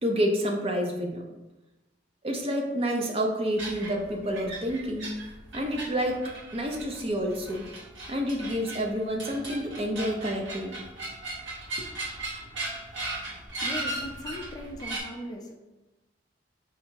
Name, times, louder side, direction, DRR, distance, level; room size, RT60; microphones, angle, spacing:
voice 1, 0.0-1.3 2.2-5.2 5.5-6.2 6.5-7.6 8.1-10.8, equal, 30° right, 2 dB, 0.5 m, -29 dB
sound 1, 3.6-15.0, right 2 dB, 75° right, 1.2 m, -38 dB
voice 2, 13.6-15.5, equal, 20° left, 1 dB, 0.5 m, -39 dB
3.8 x 2.7 x 4.4 m, 1.0 s
head